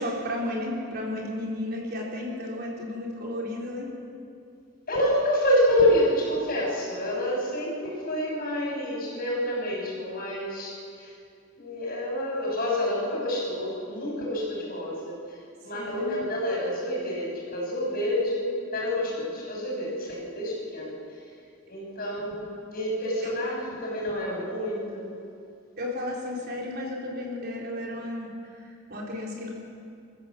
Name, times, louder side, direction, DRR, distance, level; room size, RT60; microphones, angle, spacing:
voice 1, 0.0-3.9 15.7-16.2 23.2-23.4 25.8-29.5, left 1 dB, 50° right, -3 dB, 4.1 m, -33 dB
voice 2, 4.9-10.7 11.0-11.1 11.6-15.2 15.6-20.9 21.7-25.1, left 1 dB, 45° left, -3 dB, 6.7 m, -28 dB
25.5 x 14.5 x 7.5 m, 2.5 s
head